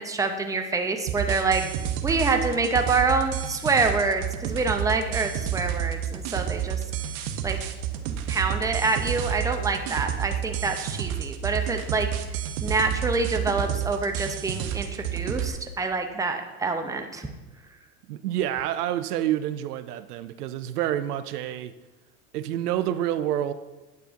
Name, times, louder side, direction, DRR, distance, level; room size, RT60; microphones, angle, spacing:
voice 1, 0.0-1.6 2.0-6.8 7.4-7.6 8.3-12.1 12.6-17.3, right 3 dB, 10° right, 5 dB, 0.6 m, -26 dB
sound 1, 1.1-15.5, right 10 dB, 60° right, 0.8 m, -30 dB
voice 2, 18.1-21.7 22.3-23.5, right 12 dB, 85° right, 12 dB, 0.5 m, -28 dB
9.4 x 6.6 x 2.5 m, 1.1 s
hypercardioid pair, 80°, 45 cm